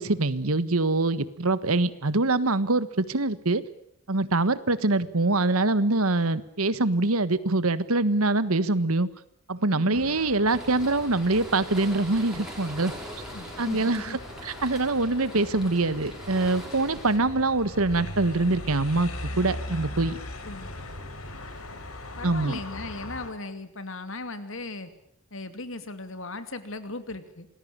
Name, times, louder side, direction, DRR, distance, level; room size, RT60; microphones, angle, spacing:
voice 1, 0.0-3.6 4.1-9.1 9.5-12.9 13.6-19.1 19.4-20.2 22.2-22.6, right 2 dB, 80° right, 15 dB, 1.5 m, -24 dB
voice 2, 9.7-10.2 13.3-14.2 20.4-20.7 22.2-24.9 25.3-27.5, left 2 dB, 65° left, 10 dB, 2.7 m, -37 dB
sound 1, 9.9-23.3, left 1 dB, 80° left, 4.5 m, -40 dB
sound 2, 10.5-17.2, equal, 5° right, 5.5 m, -42 dB
27.0 x 20.0 x 8.9 m, 0.68 s
head